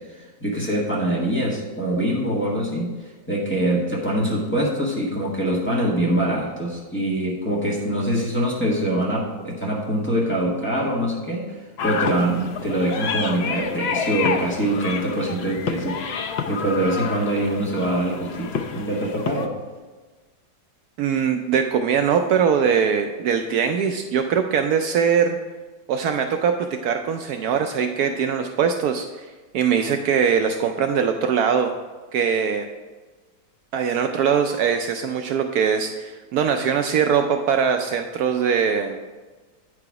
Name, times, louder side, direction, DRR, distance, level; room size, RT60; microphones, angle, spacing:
voice 1, 0.4-2.9 3.3-11.5 11.8-19.5, right 1 dB, 5° left, -5 dB, 1.5 m, -24 dB
sound 1, 11.8-19.5, left 6 dB, 65° left, 0.6 m, -29 dB
voice 2, 21.0-25.4 25.9-29.3 29.5-31.7 32.1-32.7 33.7-39.0, right 7 dB, 75° right, 6 dB, 1.0 m, -21 dB
9.0 x 4.9 x 4.8 m, 1.3 s
omnidirectional pair, 1.8 m